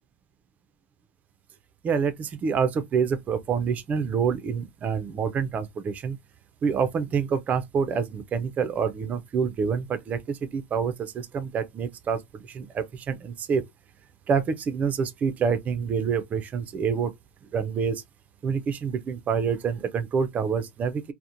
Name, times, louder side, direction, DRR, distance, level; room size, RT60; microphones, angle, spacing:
voice 1, 1.8-6.2 6.6-10.2 10.5-10.9 11.3-12.2 12.5-13.6 14.3-17.1 17.5-17.9 18.4-21.0, right 6 dB, 20° right, 0.3 m, -27 dB
2.8 x 2.0 x 2.4 m
supercardioid pair, 145°, 7 cm